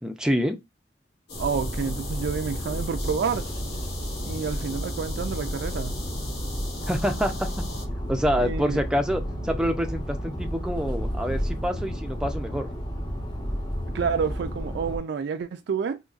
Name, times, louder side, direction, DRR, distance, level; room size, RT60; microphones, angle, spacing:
voice 1, 0.0-0.6 6.9-7.5 8.1-12.7, equal, 5° right, 0.5 m, -26 dB
sound 1, 1.3-7.8, left 2 dB, 65° left, 1.0 m, -39 dB
sound 2, 1.3-15.0, equal, 25° left, 0.9 m, -32 dB
voice 2, 1.4-3.4 4.3-5.9 8.4-8.8 13.9-16.0, right 6 dB, 65° right, 0.3 m, -29 dB
3.9 x 2.8 x 2.4 m
head